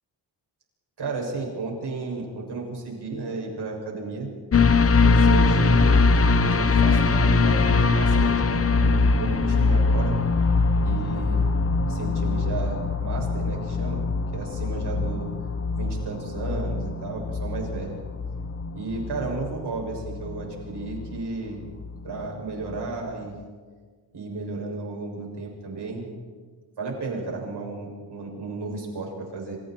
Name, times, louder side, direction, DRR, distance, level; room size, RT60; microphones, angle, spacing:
voice 1, 1.0-4.3 5.0-10.2 10.8-11.5 11.9-14.0 14.3-15.3 15.7-18.0 18.7-21.6 22.0-23.4 24.1-26.1 26.8-29.6, right 3 dB, 70° right, 0 dB, 7.2 m, -33 dB
sound 1, 4.5-22.3 22.7-22.8, left 4 dB, 35° left, 1.0 m, -22 dB
28.5 x 26.5 x 4.6 m, 1.5 s
wide cardioid pair, 135°, 42 cm